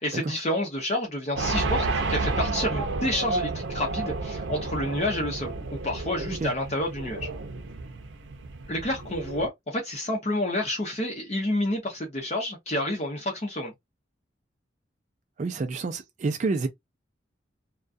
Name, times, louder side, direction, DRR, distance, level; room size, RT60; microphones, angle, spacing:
voice 1, 0.0-7.3 8.7-13.7, left 1 dB, 35° left, 0.7 m, -29 dB
sound 1, 1.4-9.5, right 3 dB, 85° right, 0.6 m, -31 dB
voice 2, 15.4-16.7, right 3 dB, 40° right, 0.3 m, -28 dB
2.3 x 2.2 x 2.5 m
head